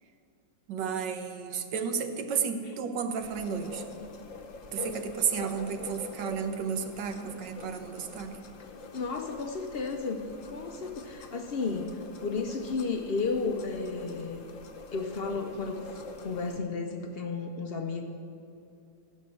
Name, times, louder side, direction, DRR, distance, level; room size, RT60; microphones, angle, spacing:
voice 1, 0.7-3.8 4.7-8.4, right 6 dB, 85° right, 7 dB, 1.5 m, -32 dB
sound 1, 3.2-16.6, left 3 dB, 55° left, 1.1 m, -45 dB
voice 2, 8.9-14.4 14.9-18.0, left 4 dB, 75° left, 5 dB, 0.5 m, -33 dB
14.5 x 5.4 x 7.6 m, 2.7 s
omnidirectional pair, 1.9 m